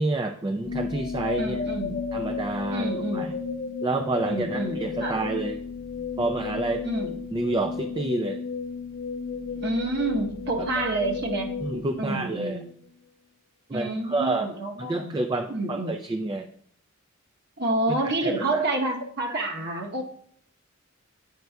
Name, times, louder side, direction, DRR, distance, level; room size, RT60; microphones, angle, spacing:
voice 1, 0.0-1.6 2.1-3.3 3.8-5.6 6.2-6.8 7.3-8.4 10.7-10.9 11.6-12.6 13.7-14.5 14.8-16.5 17.9-18.0 18.2-18.4, right 2 dB, 20° right, 5 dB, 0.3 m, -29 dB
sound 1, 0.6-12.7, left 5 dB, 50° left, 0.4 m, -33 dB
voice 2, 1.4-2.0 2.7-3.3 4.2-5.2 6.8-7.2 9.6-11.5 11.9-12.7 13.7-15.2 15.5-16.0 17.6-20.0, right 2 dB, 55° right, 2 dB, 1.0 m, -28 dB
9.2 x 5.3 x 2.3 m, 0.63 s
head